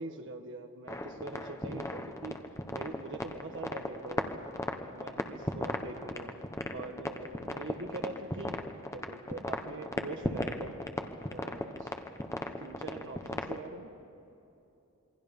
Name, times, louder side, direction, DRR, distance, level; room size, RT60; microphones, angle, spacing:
voice 1, 0.0-2.3 2.7-4.5 4.9-6.3 6.7-8.6 8.9-10.7 11.3-11.9 12.3-13.9, right 2 dB, 60° right, 4 dB, 1.5 m, -43 dB
sound 1, 0.9-13.7, left 1 dB, 15° left, 1.2 m, -36 dB
27.5 x 23.0 x 5.4 m, 2.9 s
head